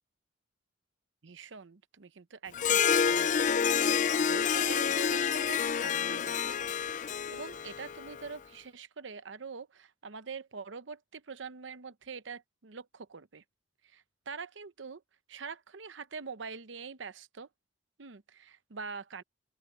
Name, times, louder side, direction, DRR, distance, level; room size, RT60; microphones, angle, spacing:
voice 1, 1.2-3.6 3.9-6.7 7.1-13.4 13.9-15.0 15.3-17.5 18.0-19.2, right 5 dB, 80° right, 0.8 m, -45 dB
Harp, 2.5-8.3, left 7 dB, 40° left, 0.4 m, -28 dB
open air
head